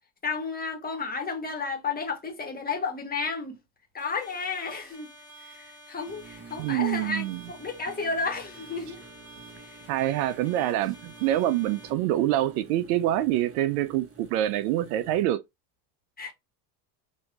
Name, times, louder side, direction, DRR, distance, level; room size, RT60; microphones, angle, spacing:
voice 1, 0.2-3.6 3.9-5.1 5.4-9.0 9.6-9.8 16.2-16.3, left 4 dB, 20° left, 1.4 m, -32 dB
sound 1, 4.0-11.9, right 1 dB, 5° right, 1.5 m, -50 dB
sound 2, 6.1-15.2, right 5 dB, 25° right, 1.4 m, -49 dB
voice 2, 6.6-7.4 9.9-15.4, right 13 dB, 75° right, 0.6 m, -26 dB
6.3 x 2.7 x 2.3 m
supercardioid pair, 115°, 48 cm